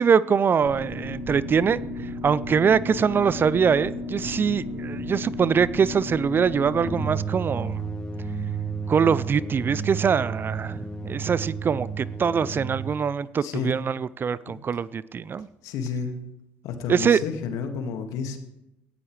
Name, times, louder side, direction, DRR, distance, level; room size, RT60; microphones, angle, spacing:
voice 1, 0.0-7.8 8.9-15.5 16.9-17.2, right 6 dB, 35° right, 0.5 m, -23 dB
sound 1, 0.6-7.0, left 1 dB, 85° right, 3.6 m, -34 dB
sound 2, 6.8-12.9, right 5 dB, 15° left, 1.6 m, -31 dB
voice 2, 13.4-13.7 14.5-14.6 15.6-16.1 16.6-18.4, left 6 dB, 65° left, 2.1 m, -30 dB
18.0 x 14.0 x 3.3 m
hypercardioid pair, 65°, 6 cm